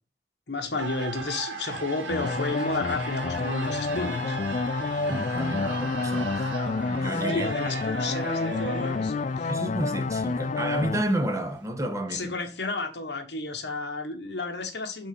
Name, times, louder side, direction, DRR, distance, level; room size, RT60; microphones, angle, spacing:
voice 1, 0.5-4.4 7.3-9.5 12.1-15.1, left 3 dB, 65° left, 1.3 m, -32 dB
sound 1, 0.8-11.7, right 3 dB, 80° right, 1.6 m, -37 dB
sound 2, 2.1-11.0, left 3 dB, 40° left, 0.3 m, -29 dB
voice 2, 5.1-6.5 6.9-7.5 9.5-12.3, right 1 dB, 15° right, 1.0 m, -30 dB
6.2 x 4.0 x 5.1 m
head